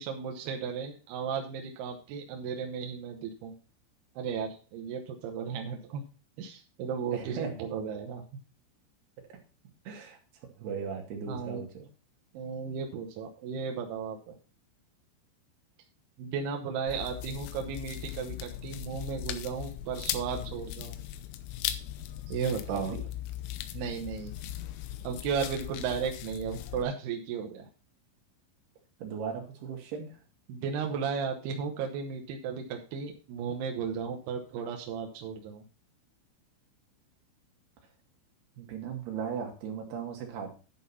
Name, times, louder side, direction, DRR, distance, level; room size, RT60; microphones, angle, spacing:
voice 1, 0.0-3.6 4.2-6.0 6.4-8.2 11.3-11.6 12.3-14.4 16.2-21.0 22.3-22.9 23.7-24.3 25.0-27.7 30.5-35.6, right 6 dB, 75° right, 3 dB, 2.4 m, -35 dB
voice 2, 7.1-7.7 9.3-9.4 9.9-10.2 10.6-11.9 22.4-23.0 29.0-30.2 38.6-40.5, right 6 dB, 60° right, 2 dB, 3.6 m, -37 dB
sound 1, 16.9-26.8, left 12 dB, 80° left, 3.1 m, -38 dB
10.5 x 5.4 x 5.6 m, 0.35 s
omnidirectional pair, 5.9 m